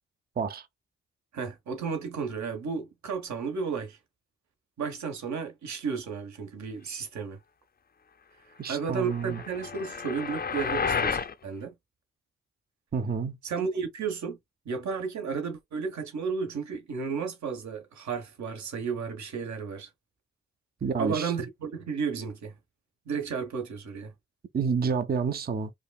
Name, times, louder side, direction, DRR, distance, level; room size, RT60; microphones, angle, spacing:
voice 1, 0.4-0.7 8.6-9.4 12.9-13.4 20.8-21.3 24.5-25.7, right 5 dB, 30° right, 0.6 m, -29 dB
voice 2, 1.3-4.0 4.8-7.4 8.5-11.7 13.4-14.4 14.6-19.9 21.0-22.6 23.1-24.1, right 5 dB, 65° right, 1.2 m, -33 dB
sound 1, 9.1-11.3, left 6 dB, 30° left, 0.5 m, -31 dB
4.8 x 2.4 x 2.3 m
supercardioid pair, 40°, 31 cm